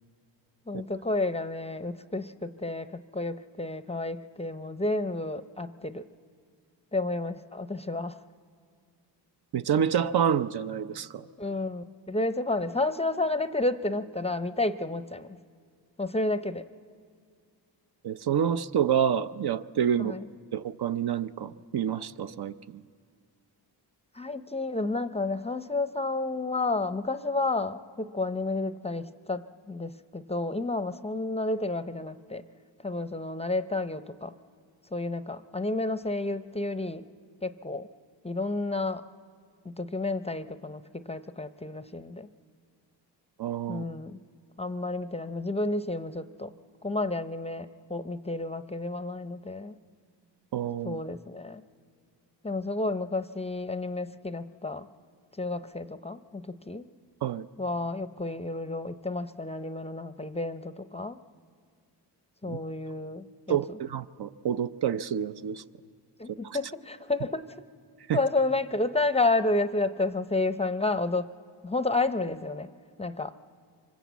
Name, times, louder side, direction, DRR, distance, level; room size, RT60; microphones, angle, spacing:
voice 1, 0.7-6.1 6.9-8.2 11.4-15.3 16.0-16.7 20.0-20.3 24.1-32.4 32.8-34.3 34.9-37.1 37.4-37.9 38.2-39.1 39.6-42.3 43.7-44.2 44.6-46.5 46.8-49.7 50.8-51.6 52.4-54.9 55.4-56.8 57.6-61.2 62.4-63.8 66.2-67.6 68.1-71.3 71.6-72.7 73.0-73.3, left 2 dB, 15° left, 12 dB, 0.5 m, -31 dB
voice 2, 9.5-11.3 18.0-20.1 20.5-22.8 43.4-43.8 50.5-51.0 57.2-57.5 62.5-62.6 63.5-65.6 66.4-66.6 68.1-68.2, right 8 dB, 65° right, 12 dB, 0.6 m, -28 dB
24.5 x 20.5 x 8.2 m, 2.1 s
cardioid pair, 95°, 43 cm